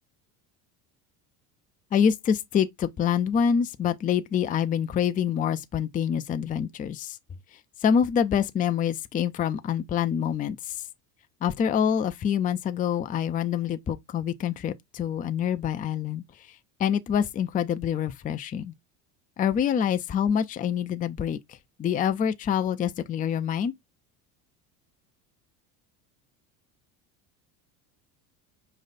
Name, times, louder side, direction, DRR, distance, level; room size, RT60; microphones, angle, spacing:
voice 1, 1.9-7.2 7.8-10.8 11.4-16.2 16.8-18.7 19.4-23.7, left 8 dB, 20° left, 0.4 m, -26 dB
5.4 x 2.5 x 4.0 m
hypercardioid pair, 80°, 47 cm